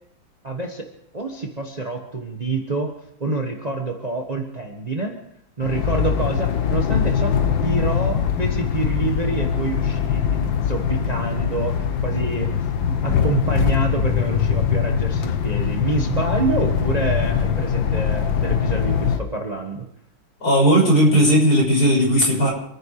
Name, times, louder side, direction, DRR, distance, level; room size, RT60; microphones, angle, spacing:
voice 1, 0.4-0.9 1.1-2.9 3.2-5.2 5.6-7.4 7.6-12.5 12.9-19.8, right 3 dB, 20° right, 2 dB, 1.4 m, -27 dB
sound 1, 5.6-19.2, left 7 dB, 75° left, 1.9 m, -22 dB
voice 2, 20.4-22.5, equal, 50° left, -2 dB, 6.6 m, -16 dB
27.0 x 10.0 x 4.9 m, 0.73 s
omnidirectional pair, 2.1 m